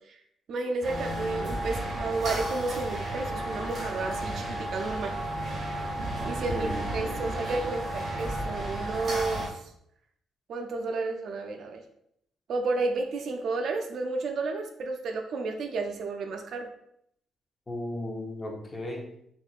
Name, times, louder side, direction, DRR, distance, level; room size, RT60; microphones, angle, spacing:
voice 1, 0.5-5.1 6.3-9.6 10.5-11.8 12.5-16.7, right 3 dB, 65° right, 5 dB, 0.4 m, -32 dB
sound 1, 0.8-9.5, right 1 dB, 50° right, 1.4 m, -33 dB
voice 2, 6.5-7.2 17.7-19.0, left 1 dB, 20° left, 0 dB, 0.8 m, -36 dB
4.3 x 2.5 x 2.4 m, 0.72 s
cardioid pair, 90°, 0 cm